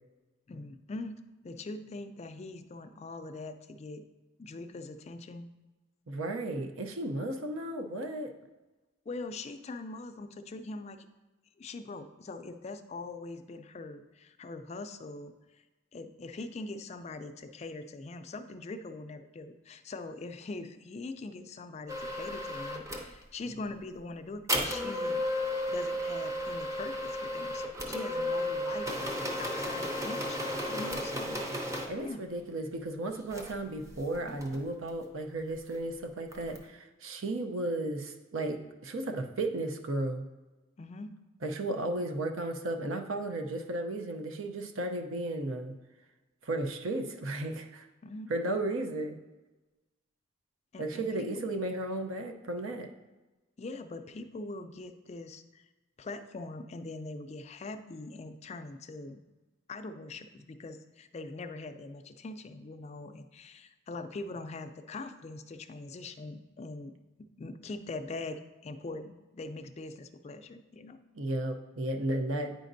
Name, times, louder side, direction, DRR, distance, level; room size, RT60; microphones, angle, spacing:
voice 1, 0.5-4.0 4.4-5.5 9.1-11.1 11.6-15.3 15.9-25.2 25.7-28.9 29.4-31.4 32.0-32.2 40.8-41.2 48.0-48.3 50.7-51.5 53.6-55.6 56.0-59.2 59.7-71.0, left 3 dB, 35° left, 9 dB, 0.3 m, -42 dB
voice 2, 6.1-8.3 31.9-40.2 41.4-45.7 46.4-47.9 48.3-49.2 50.8-52.9 71.1-72.6, right 1 dB, 90° right, 5 dB, 0.7 m, -34 dB
sound 1, 21.9-23.1 24.5-31.9 33.3-33.5 33.8-35.0 36.3-36.6, left 1 dB, 15° right, 0.6 m, -33 dB
8.9 x 5.1 x 2.6 m, 1.1 s
head